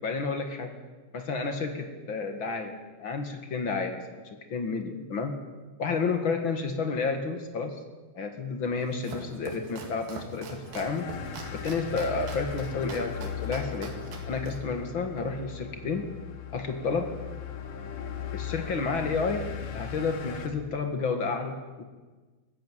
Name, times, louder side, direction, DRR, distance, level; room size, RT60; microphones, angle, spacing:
voice 1, 0.0-0.7 1.1-5.3 5.8-7.8 8.1-11.1 11.5-13.9 14.3-16.1 16.5-17.1 18.3-21.8, left 4 dB, 45° left, 6 dB, 2.0 m, -31 dB
Domestic sounds home sounds, 8.7-15.6, right 4 dB, 85° right, 4.2 m, -44 dB
sound 1, 10.6-20.5, left 8 dB, 70° left, 3.5 m, -38 dB
19.5 x 15.0 x 9.2 m, 1.3 s
omnidirectional pair, 4.0 m